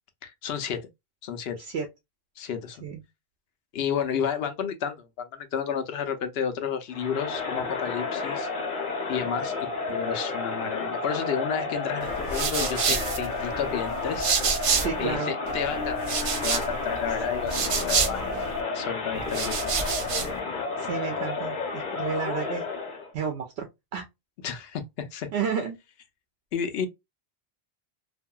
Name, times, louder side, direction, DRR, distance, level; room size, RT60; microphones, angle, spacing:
voice 1, 0.2-0.9 1.2-1.6 2.4-2.8 3.7-8.5 9.1-9.5 9.9-14.3 15.0-16.0 16.4-19.8 24.4-25.3 26.5-26.9, left 7 dB, 75° left, 0.8 m, -31 dB
Crowd, 6.9-23.1, left 4 dB, 50° left, 1.0 m, -31 dB
sound 1, 12.0-15.1 15.5-18.6 19.1-20.4, right 5 dB, 60° right, 0.3 m, -29 dB
voice 2, 14.8-15.3 20.8-22.7 23.1-23.7 23.9-24.0 25.3-25.8, right 6 dB, 85° right, 0.8 m, -31 dB
2.7 x 2.6 x 2.2 m
omnidirectional pair, 1.1 m